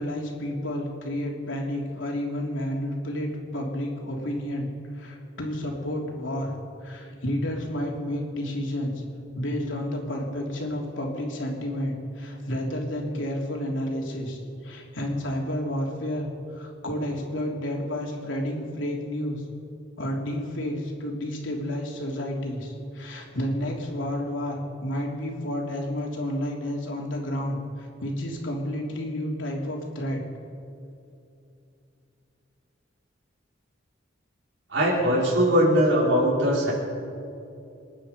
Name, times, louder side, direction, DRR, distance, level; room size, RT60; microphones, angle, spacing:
voice 1, 0.0-4.7 4.9-6.5 6.8-8.9 9.3-19.4 20.0-24.6 24.8-30.2, left 1 dB, 80° left, -1 dB, 3.2 m, -30 dB
voice 2, 34.7-36.7, equal, 70° right, -6 dB, 4.9 m, -21 dB
27.5 x 9.6 x 5.1 m, 2.7 s
head